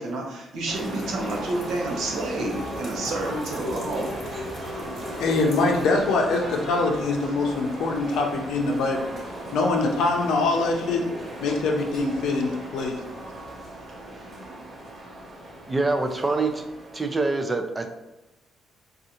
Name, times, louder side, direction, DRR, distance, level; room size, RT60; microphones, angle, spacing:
voice 1, 0.0-4.2, right 2 dB, 75° right, 0 dB, 0.7 m, -29 dB
sound 1, 0.7-5.9, left 2 dB, 60° left, 0.8 m, -38 dB
sound 2, 0.7-17.3, right 1 dB, 45° right, 0.9 m, -38 dB
voice 2, 5.2-9.1 9.5-11.0 11.4-13.0, left 3 dB, 85° left, 1 dB, 0.6 m, -23 dB
voice 3, 15.7-16.6 16.9-17.9, right 3 dB, 20° right, 6 dB, 0.4 m, -25 dB
3.7 x 2.4 x 2.8 m, 1.0 s
cardioid pair, 90°, 0 cm